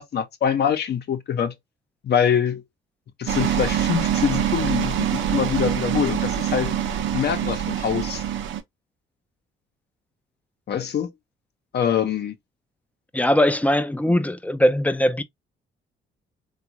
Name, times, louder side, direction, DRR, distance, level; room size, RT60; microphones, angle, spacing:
voice 1, 0.0-1.5 2.0-2.6 3.2-6.7 7.1-8.2 10.7-11.1 11.7-12.4, left 8 dB, 55° left, 0.8 m, -24 dB
sound 1, 3.3-8.6, right 9 dB, 75° right, 0.6 m, -25 dB
voice 2, 13.1-15.2, left 1 dB, 5° left, 0.4 m, -20 dB
3.7 x 2.4 x 2.8 m
cardioid pair, 90°, 20 cm